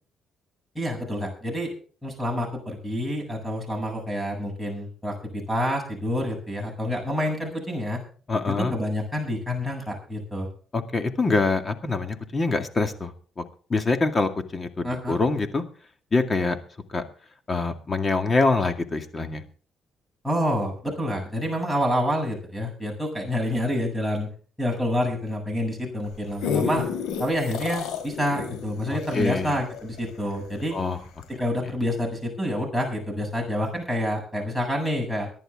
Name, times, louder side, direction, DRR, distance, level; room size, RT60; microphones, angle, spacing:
voice 1, 0.7-1.7 2.0-8.0 8.7-10.5 14.8-15.2 20.2-24.3 24.6-26.8 27.2-30.8 31.4-35.3, equal, 5° left, 2 dB, 7.7 m, -28 dB
voice 2, 8.3-8.8 10.7-13.1 13.7-15.6 16.1-16.6 16.9-17.0 17.5-19.4 28.9-29.6 30.7-31.0, left 3 dB, 30° left, 7 dB, 2.1 m, -25 dB
sound 1, 26.0-30.7 31.2-31.3, left 7 dB, 85° left, 4.3 m, -31 dB
23.0 x 11.0 x 3.7 m, 0.42 s
cardioid pair, 90°, 0 cm